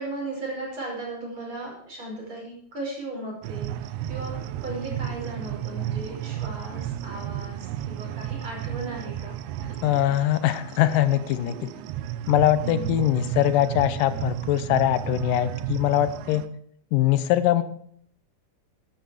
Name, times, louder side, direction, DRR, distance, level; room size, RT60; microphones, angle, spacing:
voice 1, 0.0-4.3 4.6-9.7 12.6-12.9, right 2 dB, 40° right, -2 dB, 6.2 m, -36 dB
sound 1, 3.4-16.5, right 11 dB, 75° right, 1.9 m, -33 dB
voice 2, 9.8-11.7 12.3-16.4 16.9-17.6, left 13 dB, 85° left, 13 dB, 2.5 m, -22 dB
12.5 x 11.5 x 4.9 m, 0.63 s
omnidirectional pair, 3.8 m